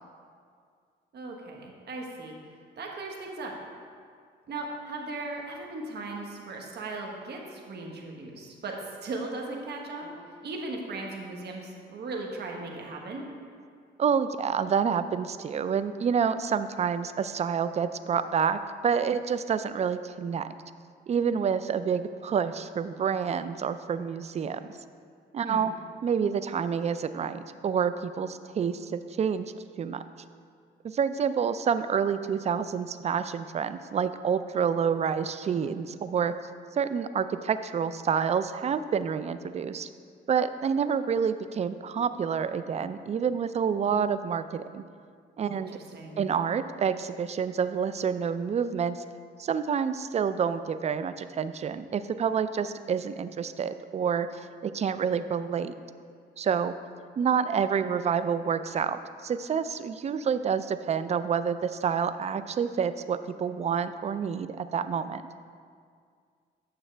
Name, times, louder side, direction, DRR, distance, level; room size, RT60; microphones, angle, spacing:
voice 1, 1.1-2.4 2.8-3.5 4.5-13.2 25.4-25.7 45.5-46.3, right 2 dB, 55° right, 0 dB, 1.3 m, -38 dB
voice 2, 14.0-20.5 21.1-24.6 25.3-25.7 26.0-30.0 30.8-36.3 36.8-39.9 40.3-44.8 45.4-45.8 46.2-49.0 49.4-54.3 54.6-55.7 56.4-56.7 57.2-65.2, right 7 dB, 35° right, 12 dB, 0.4 m, -28 dB
8.9 x 6.8 x 3.3 m, 2.2 s
cardioid pair, 90°, 20 cm